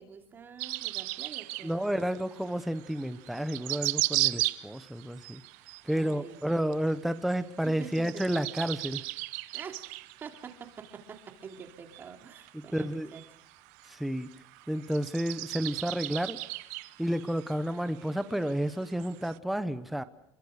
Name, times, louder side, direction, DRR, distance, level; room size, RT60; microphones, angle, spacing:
voice 1, 0.0-1.9 5.9-6.4 7.6-8.4 9.5-9.8 10.2-13.2, right 6 dB, 25° right, 4 dB, 2.9 m, -46 dB
sound 1, 0.6-19.4, right 21 dB, 80° right, 0.9 m, -37 dB
voice 2, 1.6-5.4 5.8-9.0 12.5-13.1 13.9-14.3 14.7-16.4 17.0-20.0, equal, ahead, 11 dB, 0.9 m, -31 dB
27.5 x 23.0 x 6.5 m, 0.74 s
cardioid pair, 170°, 9 cm